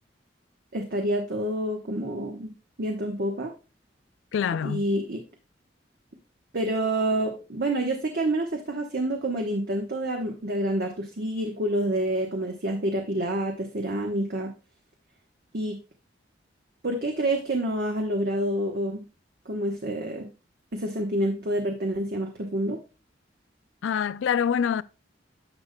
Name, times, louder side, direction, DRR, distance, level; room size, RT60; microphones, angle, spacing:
voice 1, 0.7-2.5 2.8-3.5 4.6-5.2 6.5-14.5 15.5-15.8 16.8-19.0 19.4-20.3 20.7-22.8, right 1 dB, 60° right, 1.0 m, -28 dB
voice 2, 4.3-4.9 23.8-24.8, left 7 dB, 90° left, 0.4 m, -25 dB
10.0 x 6.5 x 2.2 m
head